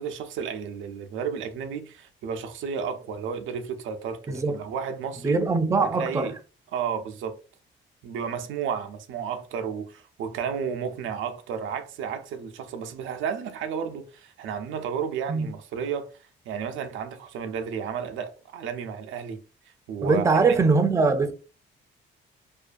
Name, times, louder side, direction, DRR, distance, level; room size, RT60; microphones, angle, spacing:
voice 1, 0.0-5.4 5.8-6.3 6.7-7.4 8.0-16.2 16.5-19.4 19.9-20.4, right 7 dB, 80° right, 0.4 m, -32 dB
voice 2, 4.3-4.6 5.2-6.3 15.3-15.5 20.0-21.3, right 4 dB, 15° right, 0.3 m, -22 dB
2.4 x 2.2 x 2.4 m
cardioid pair, 90°, 20 cm